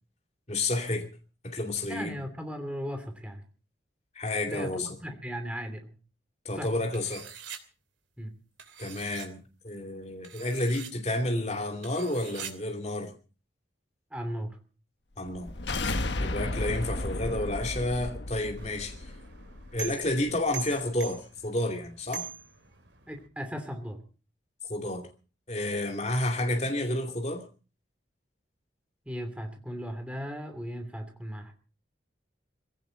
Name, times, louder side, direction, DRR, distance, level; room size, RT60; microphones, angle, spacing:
voice 1, 0.5-1.1 1.4-2.2 4.1-4.9 6.4-7.2 8.8-9.4 9.6-13.1 15.2-15.5 16.2-18.9 19.7-22.3 24.7-25.1 25.5-27.4, left 1 dB, 35° left, 2.7 m, -30 dB
voice 2, 1.9-3.4 4.5-6.0 6.5-6.7 8.2-8.3 14.1-14.6 23.1-24.0 29.1-31.5, equal, 5° right, 2.8 m, -37 dB
sound 1, 6.9-7.6 8.6-9.3 10.2-10.9 11.8-12.5, right 8 dB, 90° right, 2.8 m, -43 dB
sound 2, 15.3-20.4, left 2 dB, 70° left, 1.3 m, -34 dB
sound 3, 18.6-23.3, right 7 dB, 70° right, 3.1 m, -43 dB
22.0 x 16.5 x 4.0 m
head